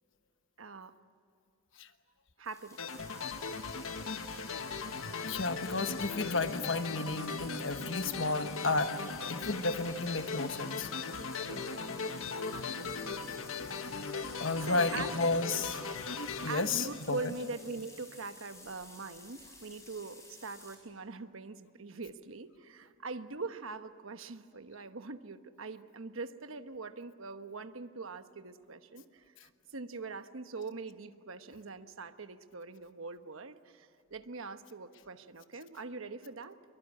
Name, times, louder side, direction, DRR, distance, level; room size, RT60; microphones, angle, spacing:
voice 1, 0.6-0.9 2.4-3.0 11.5-12.9 14.6-15.3 16.5-29.3 29.7-36.6, right 3 dB, 75° right, 9 dB, 1.1 m, -43 dB
sound 1, 2.4-20.7, left 2 dB, 15° left, 5.7 m, -54 dB
sound 2, 2.8-17.6, left 4 dB, 85° left, 1.4 m, -39 dB
voice 2, 5.3-8.9 9.3-10.9 14.4-15.8 16.4-17.2, left 3 dB, 65° left, 9 dB, 1.2 m, -32 dB
24.0 x 23.5 x 8.5 m, 2.5 s
head